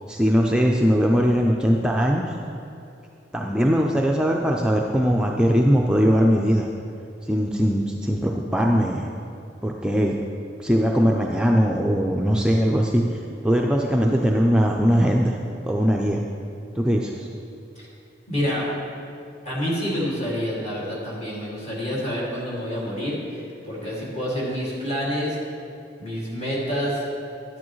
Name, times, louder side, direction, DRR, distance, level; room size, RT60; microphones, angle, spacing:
voice 1, 0.1-2.2 3.3-6.7 7.2-9.1 9.6-10.2 10.6-15.4 15.6-16.2 16.8-17.3, equal, 5° right, -1 dB, 0.4 m, -20 dB
voice 2, 18.3-18.7 19.4-25.4 26.0-27.0, equal, 40° left, -6 dB, 2.3 m, -28 dB
10.5 x 8.5 x 3.1 m, 2.5 s
head